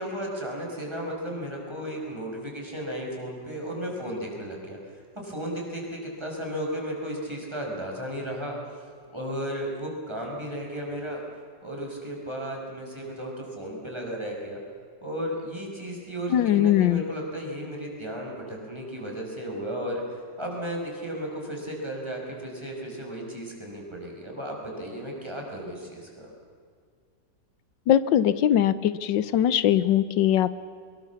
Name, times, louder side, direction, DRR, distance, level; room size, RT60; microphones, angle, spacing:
voice 1, 0.0-8.5 9.1-11.2 11.6-14.6 15.0-20.0 20.4-26.3, equal, 15° right, -1 dB, 5.9 m, -34 dB
voice 2, 16.3-17.0 27.9-30.5, left 11 dB, 90° left, 15 dB, 1.5 m, -21 dB
24.5 x 22.0 x 7.2 m, 2.1 s
omnidirectional pair, 1.9 m